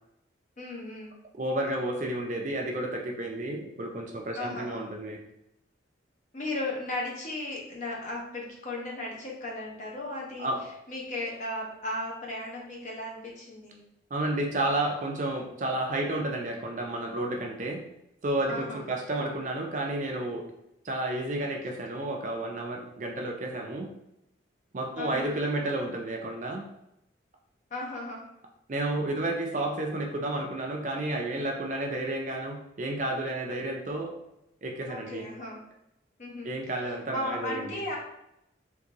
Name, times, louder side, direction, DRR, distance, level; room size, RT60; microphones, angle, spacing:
voice 1, 0.6-1.1 4.3-4.9 6.3-10.5 10.9-13.8 18.5-19.0 19.3-19.4 25.0-25.3 27.7-28.2 34.9-35.6 36.2-36.5 36.8-38.0, left 1 dB, 40° left, -2 dB, 0.8 m, -36 dB
voice 2, 1.3-5.2 10.4-10.6 14.1-17.8 18.2-20.4 20.8-23.9 24.7-26.7 28.7-34.1 34.6-35.3 36.4-37.8, right 1 dB, 40° right, 2 dB, 0.4 m, -31 dB
3.7 x 2.6 x 2.9 m, 0.83 s
head